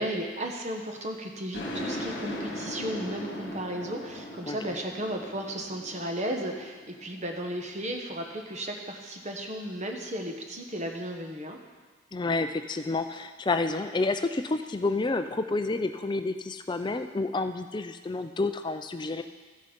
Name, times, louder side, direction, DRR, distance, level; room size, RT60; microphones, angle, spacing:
voice 1, 0.0-11.6, right 1 dB, 30° right, 3 dB, 1.0 m, -34 dB
sound 1, 1.5-8.2, left 1 dB, 50° left, 1.7 m, -39 dB
voice 2, 4.5-4.8 12.1-19.2, left 3 dB, 20° left, 8 dB, 0.4 m, -29 dB
14.0 x 6.5 x 5.2 m, 1.4 s
head